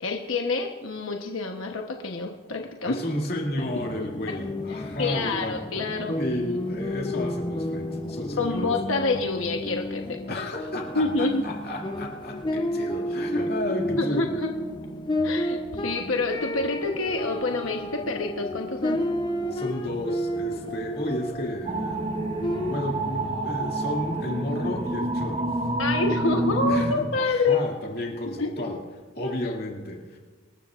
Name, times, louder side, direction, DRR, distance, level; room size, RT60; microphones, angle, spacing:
voice 1, 0.0-3.0 5.0-6.2 8.4-10.4 10.9-11.4 14.0-14.5 15.2-19.0 25.8-27.6 28.3-28.5 29.2-29.3, left 3 dB, 90° left, 2 dB, 1.1 m, -27 dB
voice 2, 2.8-5.6 6.2-8.6 10.3-14.3 19.5-22.1 22.7-25.7 26.7-28.8 29.1-30.2, left 1 dB, 50° left, 0 dB, 2.4 m, -32 dB
sound 1, 3.6-22.8, left 1 dB, 25° left, 0.7 m, -31 dB
sound 2, 21.7-26.9, right 1 dB, 30° right, 1.1 m, -28 dB
25.5 x 13.0 x 2.5 m, 1.4 s
head